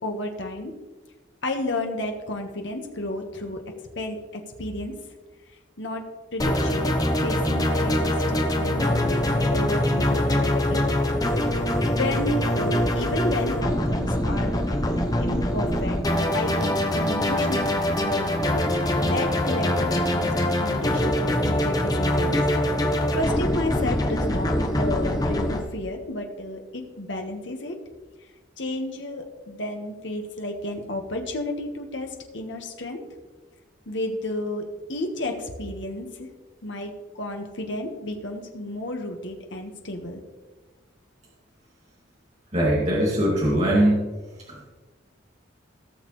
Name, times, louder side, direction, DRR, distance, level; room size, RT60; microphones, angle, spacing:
voice 1, 0.0-0.7 1.4-3.6 3.9-4.9 5.8-6.0 6.3-6.9 7.2-10.8 11.9-14.6 15.2-16.0 16.3-17.7 18.0-18.6 19.0-22.4 23.1-27.7 28.6-33.0 33.9-34.6 34.9-36.3 36.6-40.2, left 1 dB, 70° left, 3 dB, 1.5 m, -32 dB
sound 1, 6.4-25.6, left 1 dB, 20° left, 0.9 m, -23 dB
voice 2, 42.5-44.1, right 1 dB, 35° right, -5 dB, 2.3 m, -21 dB
17.5 x 6.6 x 3.2 m, 1.3 s
head